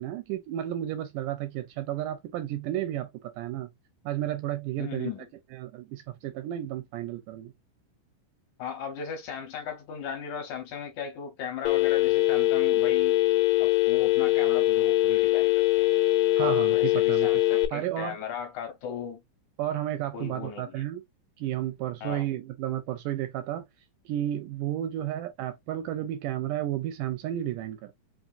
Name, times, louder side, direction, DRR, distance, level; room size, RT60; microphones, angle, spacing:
voice 1, 0.0-3.7 4.1-5.1 5.5-7.5 16.4-17.3 17.7-18.2 19.6-21.0 21.4-23.7 24.1-27.9, right 12 dB, 80° right, 1.9 m, -32 dB
voice 2, 4.8-5.3 8.6-13.2 13.6-15.9 16.4-19.2 20.1-20.9 22.0-22.3, left 7 dB, 65° left, 2.3 m, -37 dB
Telephone, 11.7-17.7, left 18 dB, 85° left, 2.4 m, -22 dB
5.4 x 2.8 x 2.5 m
omnidirectional pair, 4.1 m